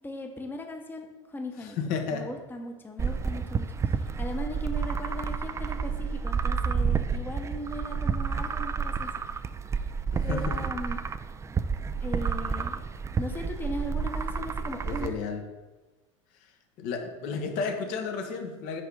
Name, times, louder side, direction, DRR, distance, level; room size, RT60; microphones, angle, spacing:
voice 1, 0.0-1.8 2.1-9.1 10.2-11.0 12.0-12.8 13.2-15.2, left 1 dB, 15° left, 3 dB, 0.8 m, -38 dB
voice 2, 1.6-2.2 10.1-10.6 14.9-15.4 16.8-18.8, left 5 dB, 60° left, 4 dB, 1.1 m, -32 dB
sound 1, 3.0-15.1, right 5 dB, 20° right, 0.3 m, -30 dB
5.3 x 4.7 x 4.6 m, 1.2 s
hypercardioid pair, 85°, 16 cm